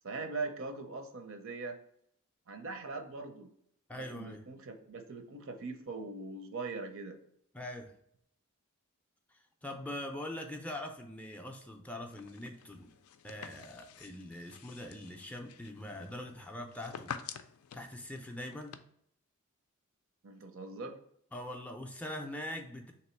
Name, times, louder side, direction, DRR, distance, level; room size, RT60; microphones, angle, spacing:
voice 1, 0.0-1.8 2.5-3.5 3.9-7.2 20.2-21.0, right 3 dB, 65° right, 6 dB, 0.6 m, -41 dB
voice 2, 3.9-4.4 7.5-7.9 9.3-12.9 13.2-17.2 17.7-18.8 21.3-22.9, left 1 dB, 5° left, 3 dB, 0.3 m, -43 dB
sound 1, 12.1-18.8, left 7 dB, 85° left, 0.4 m, -49 dB
3.3 x 2.9 x 4.3 m, 0.70 s
head